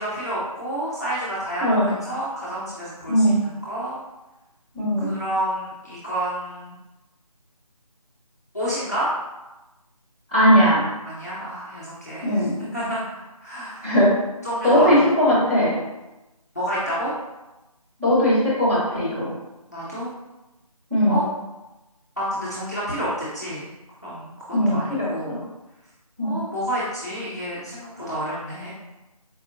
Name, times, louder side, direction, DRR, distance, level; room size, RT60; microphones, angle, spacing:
voice 1, 0.0-4.0 5.0-6.7 8.5-9.1 11.0-13.0 13.4-13.9 14.4-15.4 16.5-17.1 19.7-20.1 21.1-21.2 22.2-23.7 24.0-24.3 24.7-25.4 26.2-28.7, equal, 25° left, -9 dB, 0.5 m, -29 dB
voice 2, 1.6-1.9 3.1-3.4 4.7-5.1 10.3-10.8 12.2-12.5 13.8-14.1 14.6-15.8 18.0-19.3 20.9-21.2 24.5-25.4 26.2-26.4, equal, 20° right, -12 dB, 0.9 m, -19 dB
4.1 x 2.4 x 2.5 m, 1.0 s
figure-of-eight pair, 175°, 19 cm